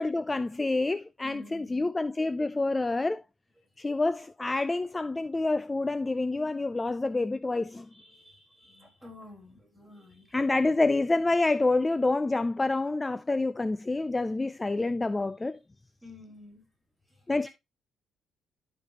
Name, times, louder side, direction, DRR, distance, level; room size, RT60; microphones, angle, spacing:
voice 1, 0.0-3.2 3.8-7.9 10.3-15.6 17.3-17.5, left 2 dB, 20° left, 0.4 m, -27 dB
voice 2, 1.2-1.9 3.9-4.1 4.6-4.7 7.9-10.4 16.0-16.7 17.1-17.5, left 2 dB, ahead, 5.0 m, -51 dB
12.5 x 5.3 x 3.0 m
cardioid pair, 90°, 0 cm